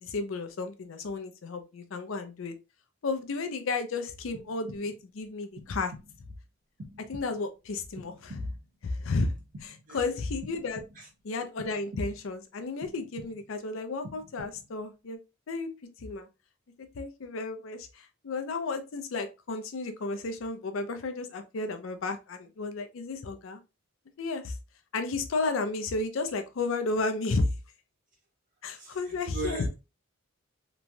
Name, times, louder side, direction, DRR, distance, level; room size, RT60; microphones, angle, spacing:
voice 1, 0.0-2.5 3.0-5.9 7.0-8.5 8.8-9.3 9.6-10.8 11.2-15.2 15.5-15.7 16.0-16.3 16.8-23.6 24.2-24.6 24.9-27.5 28.6-29.6, left 3 dB, 65° left, 0.5 m, -33 dB
sound 1, 4.3-5.1 5.6-6.3 6.8-7.6 7.9-8.8 9.2-10.0 10.4-11.2 11.6-12.4 12.8-13.6 14.0-14.8, equal, 60° right, 0.6 m, -47 dB
voice 2, 9.9-10.2 11.0-11.1 28.8-29.8, right 2 dB, 40° right, 1.3 m, -39 dB
3.0 x 2.2 x 2.5 m
head